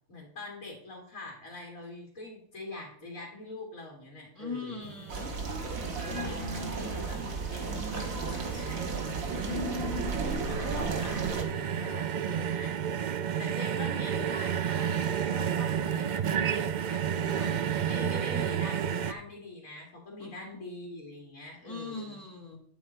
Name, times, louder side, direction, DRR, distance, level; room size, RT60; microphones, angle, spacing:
voice 1, 0.1-4.9 5.9-7.2 7.5-9.7 10.2-12.7 13.4-17.0 17.3-17.5 17.8-22.2, left 2 dB, 90° left, -2 dB, 2.5 m, -44 dB
voice 2, 4.4-5.3 6.1-6.9 9.4-10.4 21.7-22.6, left 4 dB, 20° left, -1 dB, 1.9 m, -39 dB
sound 1, 4.8-19.1, right 8 dB, 65° right, 0.4 m, -32 dB
sound 2, 5.1-11.4, right 4 dB, 90° right, 1.9 m, -34 dB
9.8 x 8.2 x 4.4 m, 0.64 s
omnidirectional pair, 1.4 m